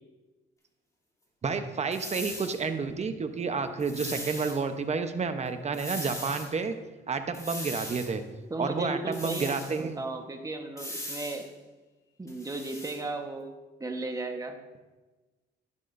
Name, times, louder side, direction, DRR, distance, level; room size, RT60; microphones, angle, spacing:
voice 1, 1.4-6.7 7.1-8.2 8.6-10.0, right 5 dB, 35° right, 8 dB, 0.9 m, -30 dB
sound 1, 1.9-2.6 3.8-4.6 5.7-6.5 7.3-8.1 9.1-9.8 10.8-11.4 12.3-13.0, left 1 dB, 15° left, 2.8 m, -39 dB
voice 2, 8.5-11.5 12.2-13.5 13.8-14.6, right 2 dB, 15° right, 4 dB, 1.2 m, -35 dB
10.5 x 10.5 x 2.6 m, 1.2 s
cardioid pair, 90°, 20 cm